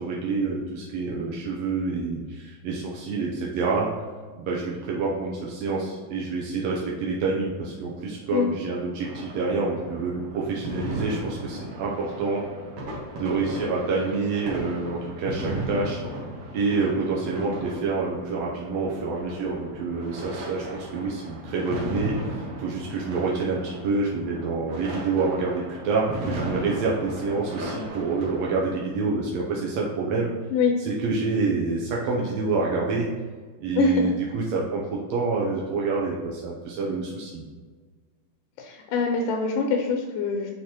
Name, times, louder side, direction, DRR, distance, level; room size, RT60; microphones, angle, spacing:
voice 1, 0.0-3.9 4.4-12.4 13.1-16.0 16.5-30.3 30.8-33.1 33.6-37.4, right 3 dB, 80° right, -3 dB, 1.6 m, -27 dB
sound 1, 9.0-28.6, right 1 dB, 55° right, 2.2 m, -36 dB
voice 2, 33.8-34.1 38.6-40.5, left 4 dB, 85° left, 2 dB, 2.3 m, -24 dB
8.8 x 3.9 x 2.9 m, 1.5 s
omnidirectional pair, 3.9 m